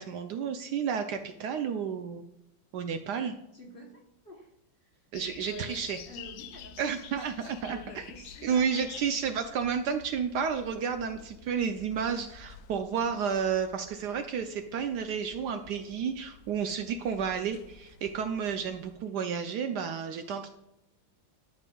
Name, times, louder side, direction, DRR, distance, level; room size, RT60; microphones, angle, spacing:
voice 1, 0.0-2.2 2.7-3.4 5.1-6.0 6.8-8.0 8.4-20.5, right 7 dB, 75° right, 7 dB, 1.0 m, -31 dB
voice 2, 3.5-4.5 4.8-5.0 5.4-6.9 7.7-9.0, left 1 dB, 40° left, -1 dB, 0.9 m, -48 dB
sound 1, 5.1-19.0, left 8 dB, 75° left, 1.0 m, -50 dB
12.0 x 5.3 x 2.3 m, 0.86 s
omnidirectional pair, 2.1 m